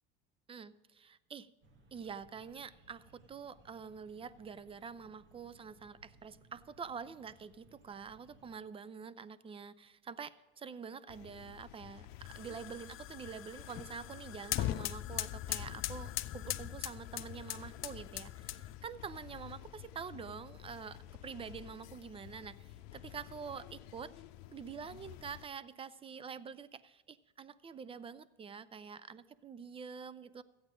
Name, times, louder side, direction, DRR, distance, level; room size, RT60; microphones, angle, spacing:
voice 1, 0.5-1.5 1.9-24.1 24.5-30.4, right 6 dB, 20° right, 17 dB, 0.4 m, -47 dB
sound 1, 1.6-8.6, right 2 dB, 40° right, 1.7 m, -64 dB
sound 2, 11.1-25.5, left 13 dB, 80° left, 0.7 m, -53 dB
sound 3, 12.2-18.9, left 14 dB, 45° left, 0.5 m, -40 dB
14.0 x 8.7 x 5.0 m, 1.2 s
supercardioid pair, 110°, 31 cm